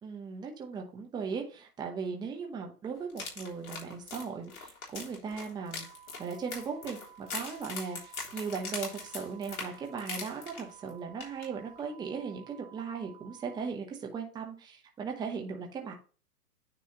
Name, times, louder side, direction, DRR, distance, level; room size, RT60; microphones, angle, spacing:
voice 1, 0.0-5.9 6.2-8.0 8.3-15.9, right 5 dB, 10° right, 2 dB, 0.9 m, -38 dB
sound 1, 3.1-10.9 11.2-11.5 11.8-11.9, left 4 dB, 70° left, 3.5 m, -41 dB
sound 2, 5.6-13.6, right 10 dB, 40° right, 1.3 m, -55 dB
9.6 x 3.3 x 4.2 m, 0.37 s
hypercardioid pair, 130°, 46 cm